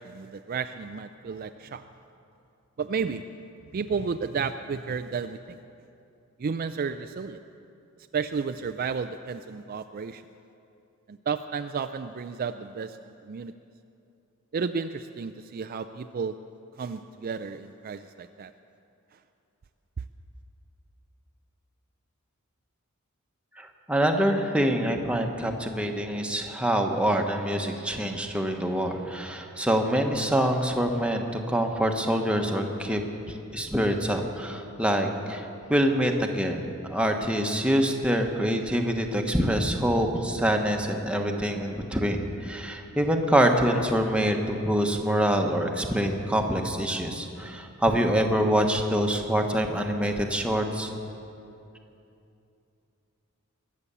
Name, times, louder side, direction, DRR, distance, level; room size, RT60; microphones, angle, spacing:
voice 1, 0.0-1.8 2.8-3.3 3.7-5.4 6.4-7.4 8.1-10.2 11.3-13.0 13.3-13.5 14.5-16.4 16.8-18.5, right 5 dB, 45° right, 9 dB, 0.4 m, -32 dB
voice 2, 23.6-33.0 33.3-36.6 36.9-50.9, equal, 5° right, 3 dB, 1.1 m, -25 dB
22.5 x 8.5 x 6.9 m, 2.7 s
head